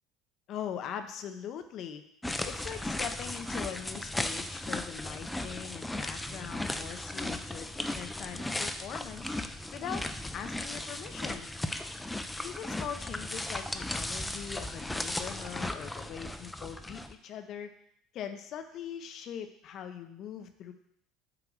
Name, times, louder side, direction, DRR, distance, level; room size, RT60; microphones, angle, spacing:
voice 1, 0.5-2.0 2.4-9.3 9.7-10.0 10.3-11.5 12.4-17.7 18.1-20.7, left 8 dB, 55° left, 7 dB, 0.7 m, -41 dB
sound 1, 2.2-17.1, left 1 dB, 10° left, 0.6 m, -36 dB
7.8 x 2.9 x 6.1 m, 0.71 s
hypercardioid pair, 75°, 0 cm